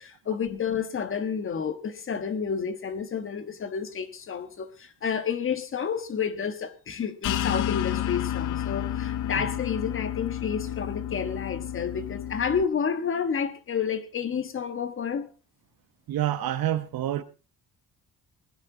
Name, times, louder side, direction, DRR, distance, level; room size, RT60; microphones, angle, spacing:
voice 1, 0.0-15.3, left 7 dB, 35° left, 1.4 m, -30 dB
sound 1, 7.2-12.6, left 11 dB, 55° left, 0.6 m, -30 dB
voice 2, 16.1-17.2, right 12 dB, 70° right, 1.3 m, -28 dB
20.0 x 11.0 x 4.0 m
cardioid pair, 175°, 37 cm